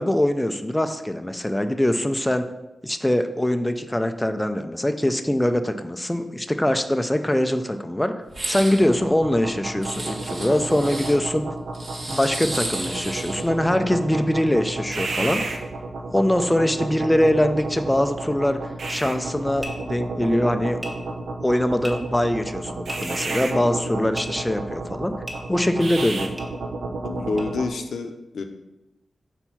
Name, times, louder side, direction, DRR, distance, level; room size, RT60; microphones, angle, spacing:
voice 1, 0.0-2.5 2.8-8.1 8.5-11.5 12.1-15.4 16.1-18.6 18.9-20.8 21.4-25.1 25.5-26.4, left 1 dB, 10° left, 7 dB, 0.4 m, -23 dB
sound 1, 8.3-8.8 9.8-11.1 11.7-13.5, right 2 dB, 45° right, 1.2 m, -33 dB
sound 2, 8.5-27.7, right 3 dB, 70° right, 0.7 m, -31 dB
sound 3, 19.6-19.7 20.8-20.9 21.8-21.9 22.8-23.2 24.1-24.2 25.2-25.4 26.4-26.5 27.4-27.5, equal, 10° right, 1.2 m, -35 dB
voice 2, 27.0-28.4, left 4 dB, 90° left, 5 dB, 0.6 m, -28 dB
4.4 x 4.4 x 5.7 m, 0.97 s
wide cardioid pair, 125°, 0 cm